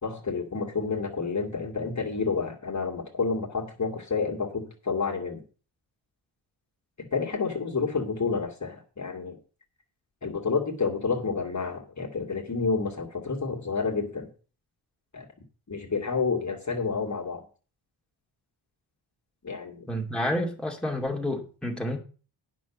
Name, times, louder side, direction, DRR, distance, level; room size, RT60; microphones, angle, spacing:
voice 1, 0.0-5.4 7.0-9.4 10.2-14.3 15.1-15.3 15.7-17.4 19.4-19.9, left 4 dB, 35° left, 2.2 m, -29 dB
voice 2, 19.9-22.0, left 1 dB, ahead, 2.5 m, -29 dB
9.3 x 6.1 x 7.1 m
cardioid pair, 80°, 46 cm